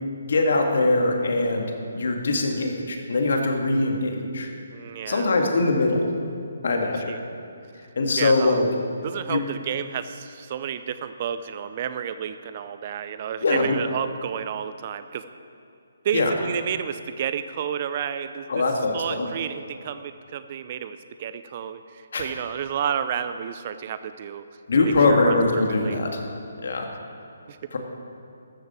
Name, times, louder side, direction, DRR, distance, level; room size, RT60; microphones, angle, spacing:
voice 1, 0.2-1.7 1.9-4.5 5.1-6.1 6.6-7.1 8.0-8.7 9.3-9.4 13.4-13.8 16.1-16.3 18.5-19.3 22.1-22.3 24.7-26.2 26.6-26.9 27.7-27.8, left 2 dB, 60° left, 2 dB, 2.1 m, -22 dB
voice 2, 4.7-5.3 7.1-7.2 8.2-8.6 9.0-15.2 16.0-18.6 18.9-24.4 24.7-26.0 27.5-27.6, right 8 dB, 40° right, 12 dB, 0.6 m, -31 dB
14.0 x 13.5 x 4.5 m, 2.5 s
figure-of-eight pair, 145°, 0 cm